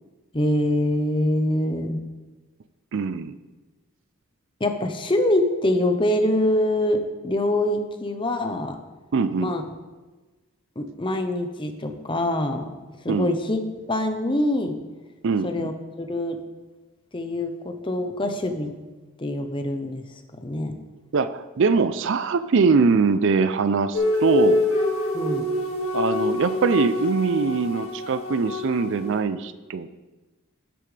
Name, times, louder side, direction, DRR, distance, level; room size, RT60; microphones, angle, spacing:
voice 1, 0.3-2.0 4.6-8.8 9.4-9.6 10.8-12.6 13.0-14.8 15.4-15.7 16.0-16.4 17.1-18.8 19.2-20.0 20.4-20.7 25.1-25.5, left 1 dB, 20° left, 6 dB, 0.7 m, -24 dB
voice 2, 2.9-3.4 9.1-9.5 13.1-13.3 15.2-15.7 21.1-24.6 25.9-30.0, right 4 dB, 55° right, 13 dB, 0.4 m, -22 dB
sound 1, 23.9-29.2, left 3 dB, 65° left, 2.1 m, -25 dB
12.5 x 8.6 x 3.3 m, 1.2 s
head